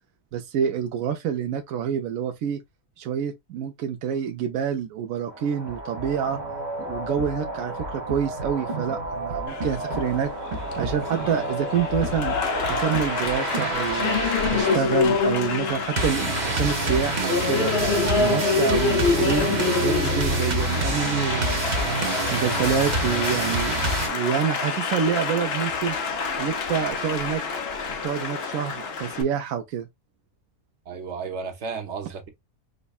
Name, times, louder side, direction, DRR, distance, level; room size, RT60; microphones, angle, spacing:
voice 1, 0.3-2.6 3.0-6.4 6.8-10.3 10.8-12.3 12.7-14.2 14.5-17.7 18.2-21.8 22.3-25.9 26.4-27.4 28.0-29.9, right 8 dB, 80° right, 1.0 m, -27 dB
sound 1, 5.3-24.1, right 2 dB, 40° right, 0.7 m, -28 dB
Applause, 9.5-29.2, left 4 dB, 55° left, 0.8 m, -27 dB
voice 2, 30.9-32.3, right 5 dB, 60° right, 1.1 m, -33 dB
5.1 x 2.2 x 2.3 m
omnidirectional pair, 1.4 m